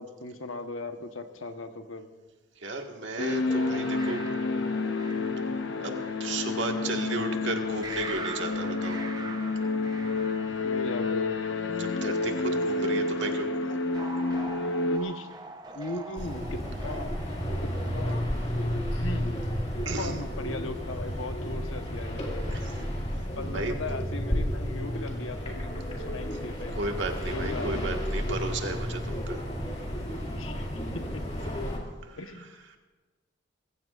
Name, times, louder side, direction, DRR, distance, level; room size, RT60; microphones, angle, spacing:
voice 1, 0.0-2.1 6.9-7.0 10.6-11.3 14.9-15.4 15.7-17.1 17.6-18.4 18.7-19.4 19.8-22.7 23.3-27.0 27.3-27.7 30.3-31.2 32.2-32.5, left 2 dB, 90° left, 6 dB, 1.2 m, -38 dB
voice 2, 2.6-4.2 5.8-9.0 11.7-13.8 19.8-20.2 22.5-22.8 23.5-23.7 26.3-26.4 26.7-29.4 32.1-32.2, right 2 dB, 65° right, 3 dB, 1.7 m, -34 dB
sound 1, 3.2-15.0, left 3 dB, 65° left, 1.0 m, -29 dB
sound 2, 3.5-7.1 7.8-12.3 13.9-18.3, right 2 dB, 20° right, 0.8 m, -43 dB
sound 3, 16.1-31.8, equal, 30° left, 2.2 m, -32 dB
24.5 x 15.0 x 2.5 m, 1.3 s
head